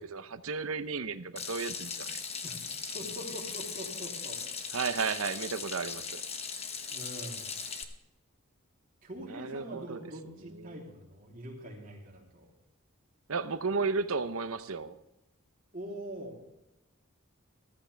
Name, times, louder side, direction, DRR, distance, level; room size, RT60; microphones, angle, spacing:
voice 1, 0.0-2.2 4.7-6.2 9.3-10.0 10.5-10.8 13.3-15.0, right 4 dB, 70° right, 12 dB, 0.8 m, -34 dB
Water tap faucet / Sink (filling or washing), 1.4-7.8, left 6 dB, 30° left, 1.1 m, -39 dB
voice 2, 2.9-4.4 6.9-7.5 9.0-12.5 15.7-16.4, equal, 40° right, -1 dB, 3.3 m, -43 dB
14.5 x 14.0 x 3.4 m, 0.94 s
head